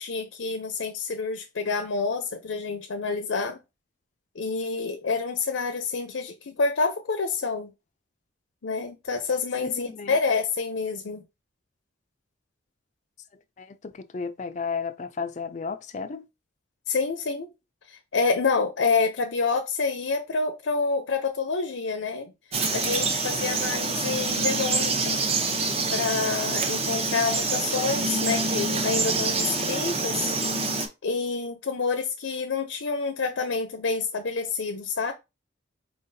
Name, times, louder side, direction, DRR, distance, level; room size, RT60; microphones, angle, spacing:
voice 1, 0.0-3.6 4.3-7.7 8.6-11.2 16.9-17.5 17.9-25.2 25.9-30.3 31.0-35.1, left 4 dB, 85° left, 0.6 m, -28 dB
voice 2, 9.6-10.2 13.6-16.3, left 5 dB, 40° left, 0.4 m, -33 dB
Frog, 22.5-30.9, right 3 dB, 30° right, 0.7 m, -26 dB
4.4 x 3.9 x 2.7 m
head